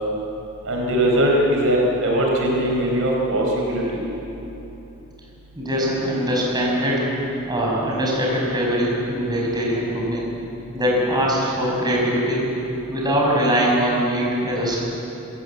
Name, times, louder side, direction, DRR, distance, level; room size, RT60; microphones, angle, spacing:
voice 1, 0.6-4.0, right 1 dB, 65° right, -1 dB, 4.4 m, -20 dB
voice 2, 5.6-7.0 7.5-10.3 10.7-12.4 12.9-14.8, equal, 20° right, -3 dB, 5.8 m, -22 dB
27.0 x 16.5 x 8.1 m, 3.0 s
head